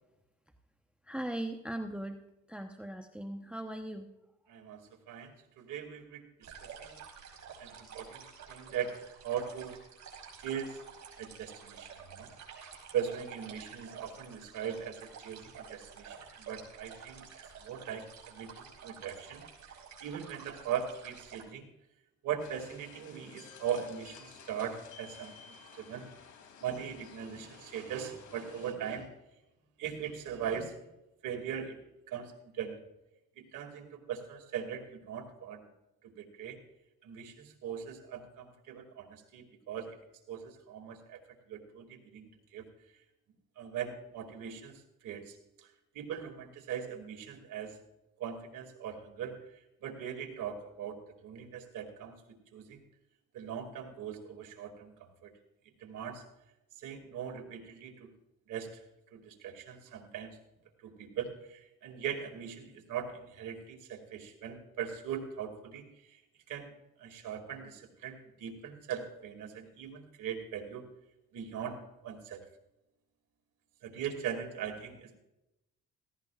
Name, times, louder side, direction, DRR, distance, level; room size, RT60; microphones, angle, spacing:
voice 1, 1.1-2.2 2.5-4.1, right 1 dB, 5° right, 5 dB, 1.0 m, -39 dB
voice 2, 4.5-7.0 7.6-9.8 10.4-10.8 11.2-12.3 12.9-19.4 20.0-21.7 22.2-25.3 25.6-26.1 26.6-29.1 29.8-30.8 31.2-31.8 32.1-32.8 33.4-35.6 36.0-36.6 37.0-40.0 40.3-41.2 41.5-42.6 43.6-47.8 48.2-52.1 52.5-52.8 53.3-55.3 55.8-56.2 56.8-58.1 58.5-58.8 59.1-60.4 60.8-66.2 66.5-66.7 67.0-70.9 71.3-72.4 73.8-75.2, right 8 dB, 85° right, 4 dB, 2.4 m, -40 dB
sound 1, 6.4-21.4, right 6 dB, 65° right, 4.6 m, -50 dB
sound 2, 22.4-28.7, left 6 dB, 75° left, 2.9 m, -54 dB
17.0 x 15.5 x 2.4 m, 0.91 s
cardioid pair, 90°, 30 cm